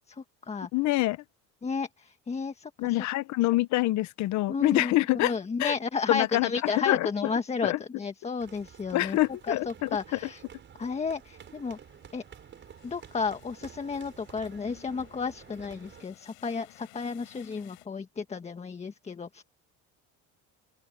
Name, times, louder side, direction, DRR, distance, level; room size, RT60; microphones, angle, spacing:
voice 1, 0.1-0.7 1.6-2.7 4.5-9.2 9.5-10.4 10.8-11.8 12.1-12.2 12.8-19.4, left 5 dB, 20° left, 1.5 m, -33 dB
voice 2, 0.7-1.2 2.8-5.3 5.6-5.7 6.1-6.5 6.9-7.1 7.6-7.8 8.9-9.9, left 17 dB, 60° left, 1.1 m, -25 dB
sound 1, 8.4-16.0, right 8 dB, 35° right, 5.7 m, -51 dB
sound 2, 11.2-17.9, left 22 dB, 80° left, 4.7 m, -58 dB
open air
cardioid pair, 135°, 32 cm